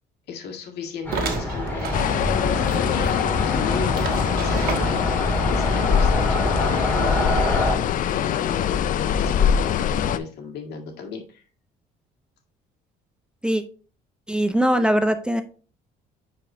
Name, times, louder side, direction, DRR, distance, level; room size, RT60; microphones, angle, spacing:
voice 1, 0.3-2.0 2.3-5.0 5.4-7.7 8.0-11.4, left 6 dB, 75° left, 2 dB, 1.8 m, -34 dB
sound 1, 1.1-7.8, left 1 dB, 10° left, 2.3 m, -25 dB
sound 2, 1.1-2.1 2.7-2.8 3.0-3.1 4.0-5.2, right 6 dB, 60° right, 1.5 m, -32 dB
sound 3, 1.9-10.2, left 9 dB, 55° left, 0.5 m, -23 dB
voice 2, 14.3-15.4, equal, 5° right, 8 dB, 0.5 m, -21 dB
9.7 x 4.2 x 2.6 m, 0.38 s
cardioid pair, 110°, 17 cm